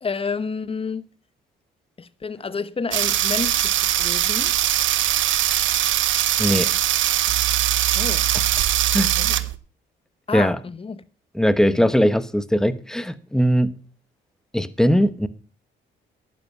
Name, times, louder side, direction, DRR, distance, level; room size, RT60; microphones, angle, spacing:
voice 1, 0.0-1.0 2.0-4.5 7.9-8.3 9.2-9.5 10.3-11.0 11.6-12.0, left 5 dB, 30° left, 1.0 m, -30 dB
sound 1, 2.9-9.6, right 13 dB, 75° right, 0.9 m, -21 dB
voice 2, 11.3-13.7 14.5-15.3, equal, 5° left, 1.0 m, -19 dB
11.0 x 9.6 x 5.4 m
cardioid pair, 90°, 20 cm